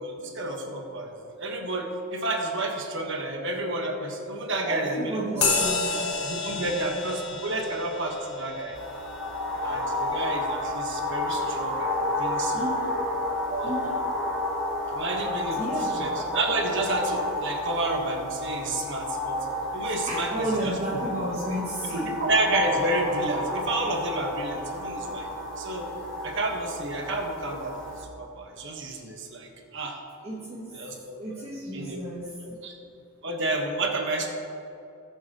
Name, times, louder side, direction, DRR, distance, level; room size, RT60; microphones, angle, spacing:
voice 1, 0.0-5.5 6.2-8.8 9.6-12.6 13.5-13.7 14.9-19.5 19.7-21.0 21.9-25.3 25.6-25.9 26.2-30.0 30.7-31.4 31.7-32.0 32.4-32.7 33.2-34.3, right 2 dB, 60° right, 2 dB, 1.5 m, -30 dB
voice 2, 4.7-6.1 6.5-6.9 12.5-13.1 13.6-14.0 15.6-16.1 20.1-22.2 30.2-30.8 31.2-32.6, right 1 dB, 30° right, -5 dB, 1.3 m, -33 dB
sound 1, 5.4-13.3, left 4 dB, 80° left, 1.4 m, -32 dB
sound 2, 8.7-28.0, left 1 dB, 5° left, 2.7 m, -31 dB
19.5 x 7.1 x 3.1 m, 2.8 s
head